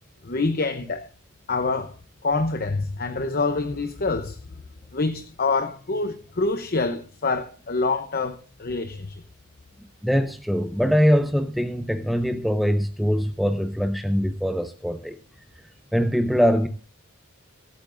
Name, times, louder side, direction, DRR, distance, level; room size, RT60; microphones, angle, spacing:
voice 1, 0.2-1.1 1.5-1.9 2.2-4.4 4.9-9.2, left 3 dB, 45° left, 0.8 m, -26 dB
voice 2, 10.0-15.2 15.9-16.7, equal, ahead, 0.6 m, -22 dB
24.0 x 8.6 x 2.6 m
head